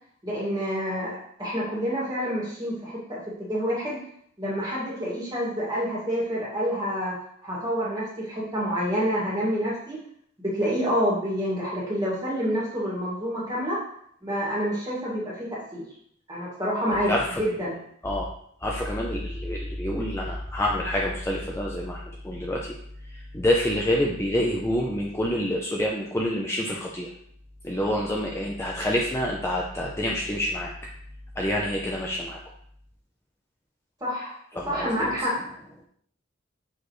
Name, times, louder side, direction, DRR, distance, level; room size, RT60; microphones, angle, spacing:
voice 1, 0.2-4.0 4.4-7.1 7.4-10.0 10.4-13.8 14.2-15.5 15.7-15.8 16.3-17.1 17.4-17.8 34.0-34.3 34.7-35.3, equal, 20° right, -6 dB, 2.2 m, -28 dB
voice 2, 17.1-17.4 18.0-18.3 18.6-22.7 23.1-27.1 27.6-30.7 31.4-32.4 34.6-35.2, left 1 dB, 15° left, -2 dB, 0.6 m, -27 dB
6.2 x 5.0 x 3.2 m, 0.67 s
head